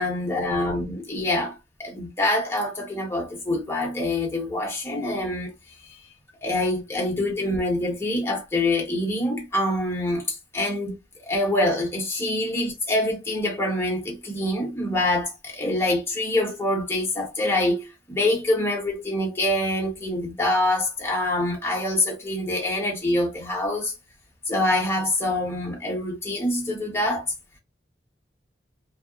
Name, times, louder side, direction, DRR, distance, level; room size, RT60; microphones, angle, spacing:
voice 1, 0.0-5.5 5.9-6.0 6.4-23.9 24.5-27.3, left 1 dB, 15° left, 0.9 m, -25 dB
2.8 x 2.1 x 2.3 m
head